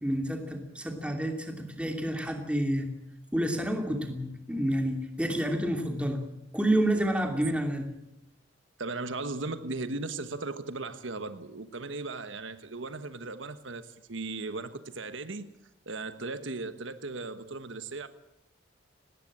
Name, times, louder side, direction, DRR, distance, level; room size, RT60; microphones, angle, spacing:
voice 1, 0.0-2.9 3.3-6.2 6.5-7.9, right 1 dB, 5° right, 4 dB, 2.8 m, -29 dB
voice 2, 8.8-15.5 15.9-18.1, right 3 dB, 75° right, 11 dB, 1.3 m, -37 dB
19.0 x 18.5 x 8.7 m, 0.81 s
head